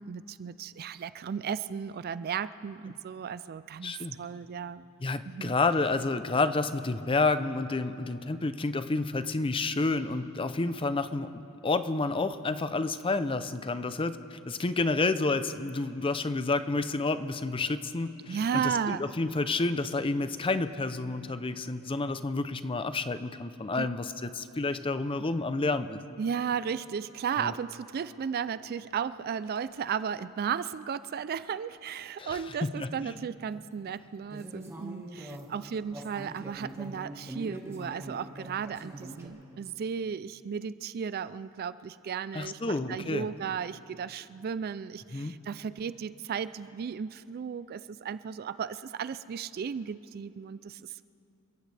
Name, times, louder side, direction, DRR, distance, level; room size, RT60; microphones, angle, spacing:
voice 1, 0.0-4.9 5.3-5.6 18.3-19.0 23.8-23.9 26.2-51.0, right 7 dB, 45° right, 15 dB, 0.3 m, -35 dB
voice 2, 3.8-4.2 5.0-11.3 11.6-26.0 27.4-27.5 32.2-32.4 32.8-33.1 42.3-43.3 45.1-45.3, left 3 dB, 25° left, 12 dB, 0.5 m, -30 dB
sound 1, 29.5-29.7 34.3-39.3, right 1 dB, 10° right, 1.5 m, -43 dB
28.5 x 15.0 x 3.3 m, 2.9 s
head